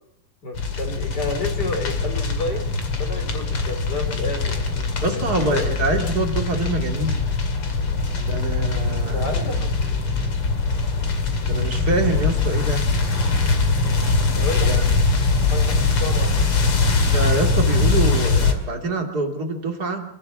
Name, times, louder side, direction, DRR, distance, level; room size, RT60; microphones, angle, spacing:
voice 1, 0.4-2.7 2.9-5.7 9.1-10.0 14.3-16.6, left 2 dB, 25° left, 5 dB, 4.0 m, -31 dB
sound 1, 0.5-18.5, left 3 dB, 40° left, 2.6 m, -22 dB
voice 2, 5.0-7.3 8.3-9.2 11.5-12.8 14.7-14.8 17.1-20.0, right 2 dB, 30° right, 3 dB, 2.3 m, -25 dB
27.5 x 14.5 x 7.4 m, 0.76 s
omnidirectional pair, 4.8 m